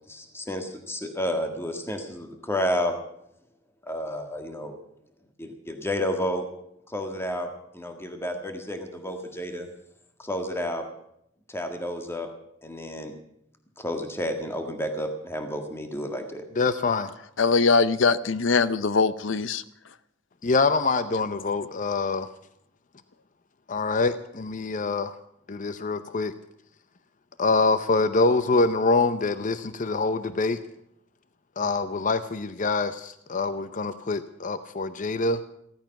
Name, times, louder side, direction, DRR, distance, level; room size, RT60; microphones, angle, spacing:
voice 1, 0.1-3.0 3.8-4.8 5.4-6.4 6.9-9.7 10.2-10.9 11.5-12.3 12.6-13.1 13.8-16.4, equal, 15° left, 5 dB, 1.8 m, -31 dB
voice 2, 16.6-17.1 20.4-22.3 23.7-25.2 25.5-26.3 27.4-30.6 31.6-35.4, left 3 dB, 45° left, 12 dB, 0.7 m, -25 dB
voice 3, 17.4-19.6, left 4 dB, 80° left, 15 dB, 0.7 m, -22 dB
16.0 x 13.5 x 5.9 m, 0.74 s
head